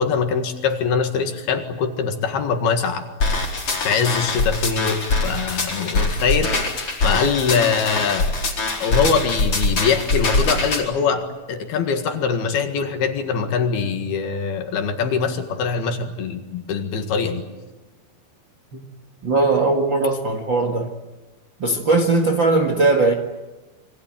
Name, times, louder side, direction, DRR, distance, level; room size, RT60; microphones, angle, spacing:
voice 1, 0.0-3.1 3.9-6.5 7.0-8.3 8.8-17.4, left 6 dB, 60° left, 6 dB, 3.5 m, -23 dB
sound 1, 3.2-10.8, left 2 dB, 30° left, 4.6 m, -23 dB
voice 2, 19.2-20.9 21.6-23.1, right 3 dB, 75° right, 5 dB, 1.0 m, -19 dB
27.5 x 24.0 x 8.9 m, 1.1 s
omnidirectional pair, 5.4 m